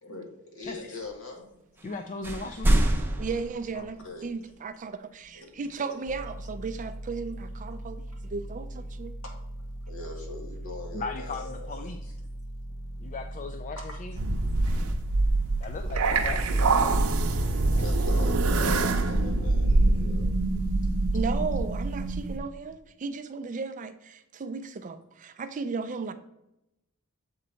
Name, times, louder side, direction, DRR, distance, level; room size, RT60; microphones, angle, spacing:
voice 1, 0.0-1.8 3.9-4.3 5.3-6.3 8.1-8.2 9.2-11.9 12.6-13.2 13.8-14.0 14.5-15.7 17.4-20.3, left 2 dB, 65° left, 1.8 m, -43 dB
voice 2, 0.7-1.0 1.8-2.9 3.7-3.9 10.9-12.1 13.0-14.2 15.6-17.0, left 3 dB, 35° left, 0.4 m, -38 dB
sound 1, 1.8-1.9 2.2-4.3, right 1 dB, 10° right, 0.7 m, -26 dB
voice 3, 3.2-9.1 21.1-26.1, right 4 dB, 35° right, 0.4 m, -35 dB
sound 2, 6.1-17.5, right 1 dB, 85° left, 1.5 m, -39 dB
sound 3, 14.2-22.4, right 2 dB, 75° right, 0.6 m, -25 dB
7.4 x 4.0 x 4.3 m
head